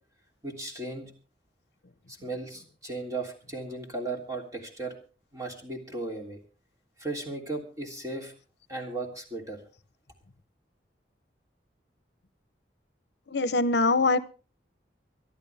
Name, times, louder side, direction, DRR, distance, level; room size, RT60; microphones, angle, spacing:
voice 1, 0.4-1.1 2.1-4.9 5.3-6.4 7.0-8.3 8.7-9.6, right 2 dB, 20° right, 1 dB, 3.2 m, -36 dB
voice 2, 13.3-14.2, left 3 dB, 65° left, 14 dB, 0.8 m, -23 dB
25.0 x 11.0 x 3.5 m, 0.36 s
head